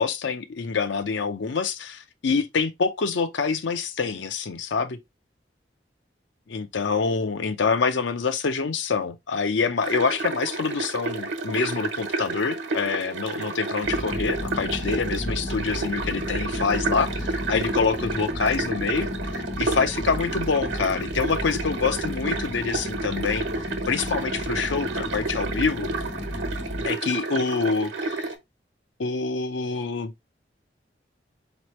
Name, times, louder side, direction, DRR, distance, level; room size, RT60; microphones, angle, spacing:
voice 1, 0.0-5.0 6.5-19.1 19.6-23.5 23.9-25.9 26.8-28.3 29.0-30.1, left 5 dB, 85° left, 0.6 m, -26 dB
sound 1, 9.8-28.3, right 3 dB, 90° right, 1.1 m, -31 dB
sound 2, 13.8-26.9, left 1 dB, 25° left, 0.6 m, -33 dB
4.2 x 3.1 x 3.0 m
head